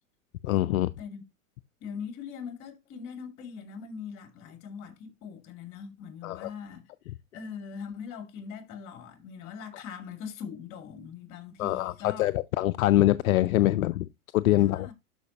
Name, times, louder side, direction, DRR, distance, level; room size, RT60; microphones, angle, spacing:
voice 1, 0.4-0.9 6.2-6.5 11.6-14.1 14.3-14.9, left 15 dB, 75° left, 0.6 m, -24 dB
voice 2, 1.8-6.9 7.3-12.3 14.6-14.9, left 6 dB, 45° left, 2.7 m, -41 dB
12.0 x 5.3 x 2.9 m
hypercardioid pair, 105°, 42 cm